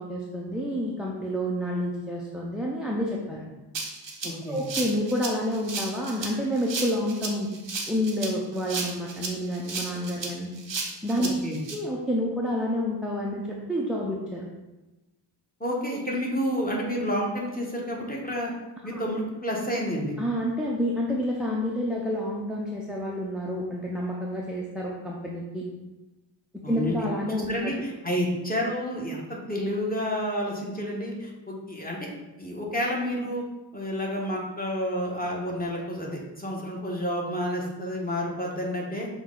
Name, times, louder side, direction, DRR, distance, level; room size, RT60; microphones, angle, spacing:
voice 1, 0.0-3.5 4.5-7.5 7.9-10.5 11.0-11.4 11.7-14.4 18.9-19.0 20.2-25.7 26.5-27.7, equal, ahead, -4 dB, 0.6 m, -29 dB
Rattle (instrument), 3.7-11.7, right 4 dB, 75° right, 0.8 m, -34 dB
voice 2, 4.2-4.6 11.2-11.6 15.6-18.5 18.8-20.2 26.6-27.0 27.5-32.1 32.4-33.4 33.7-39.1, equal, 20° left, -2 dB, 1.1 m, -30 dB
6.1 x 2.3 x 3.7 m, 1.1 s
wide cardioid pair, 50°, 44 cm